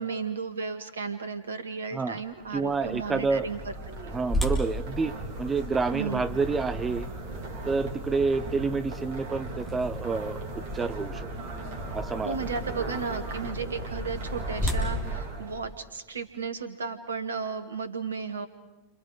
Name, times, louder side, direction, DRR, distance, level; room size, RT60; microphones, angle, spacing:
voice 1, 0.0-3.6 3.9-4.2 5.9-6.3 12.2-18.5, right 5 dB, 70° right, 10 dB, 2.0 m, -34 dB
sound 1, 2.3-15.7, right 1 dB, 50° right, 3.5 m, -37 dB
voice 2, 2.5-3.5 4.0-7.1 7.7-10.4 10.7-11.3 11.9-12.4, right 4 dB, 15° right, 12 dB, 0.8 m, -28 dB
sound 2, 4.3-10.2 10.8-10.9 11.5-11.7 13.8-16.4, equal, 5° left, 4.2 m, -34 dB
30.0 x 27.0 x 5.1 m, 1.0 s
figure-of-eight pair, 90°, 0 cm